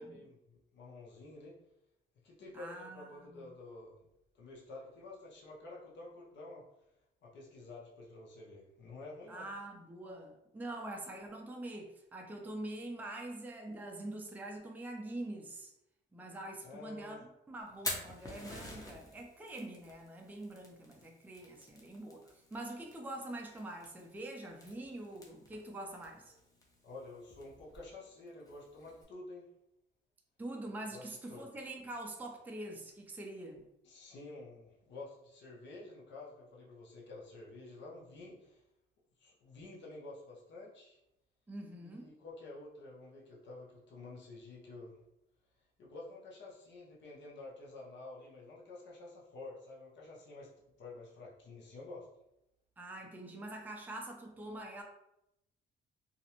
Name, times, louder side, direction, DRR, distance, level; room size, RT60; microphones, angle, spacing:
voice 1, 0.0-1.6 2.2-4.0 4.3-6.7 7.2-9.5 16.6-17.2 26.8-29.5 30.9-31.5 33.8-38.6 39.2-41.0 41.8-45.0 45.8-50.5 50.8-52.1, left 2 dB, 65° left, -4 dB, 0.7 m, -50 dB
voice 2, 2.5-3.4 9.3-15.7 16.1-17.2 17.5-26.3 30.4-33.6 41.5-42.1 52.8-54.8, right 1 dB, 10° right, 1 dB, 0.4 m, -45 dB
Fire, 17.6-29.0, left 1 dB, 20° left, 0.7 m, -49 dB
2.5 x 2.0 x 2.8 m, 0.84 s
cardioid pair, 90°, 20 cm